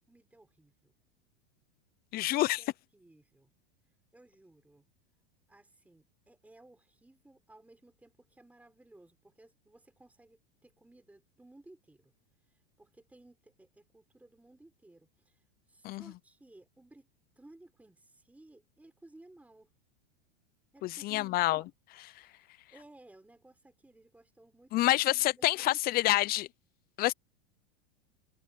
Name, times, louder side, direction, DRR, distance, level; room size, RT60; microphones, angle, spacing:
voice 1, 0.1-0.9 2.3-3.5 4.1-4.9 5.5-12.1 12.5-17.1 17.4-19.7 20.7-21.7 22.2-25.4 25.7-26.2, right 2 dB, 5° right, 4.8 m, -58 dB
voice 2, 2.1-2.6 15.8-16.0 20.8-21.6 24.7-26.5 27.0-27.1, left 17 dB, 30° left, 0.5 m, -27 dB
supercardioid pair, 130°, 31 cm